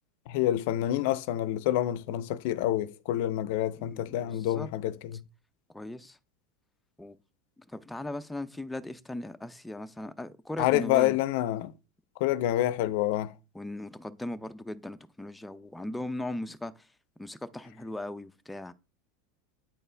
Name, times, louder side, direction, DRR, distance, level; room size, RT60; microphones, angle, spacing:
voice 1, 0.3-5.2 10.6-11.7 12.2-13.3, left 13 dB, 70° left, 0.5 m, -27 dB
voice 2, 3.8-4.7 5.7-6.2 7.0-7.2 7.6-11.2 13.5-16.9 17.2-18.7, left 1 dB, 5° left, 0.6 m, -38 dB
9.0 x 4.3 x 3.3 m
hypercardioid pair, 100°, 0 cm